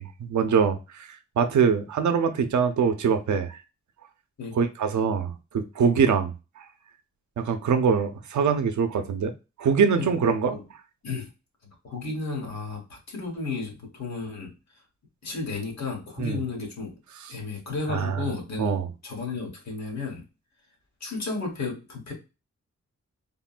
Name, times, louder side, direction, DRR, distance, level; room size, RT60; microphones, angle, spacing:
voice 1, 0.0-3.6 4.5-6.7 7.4-9.3 9.6-10.5 16.2-16.4 17.9-18.3 18.6-18.9, right 6 dB, 75° right, 0.6 m, -24 dB
voice 2, 11.8-14.5 15.2-17.0 17.3-20.2 21.0-22.1, left 4 dB, 65° left, 1.4 m, -33 dB
3.6 x 2.2 x 2.4 m
wide cardioid pair, 130°, 30 cm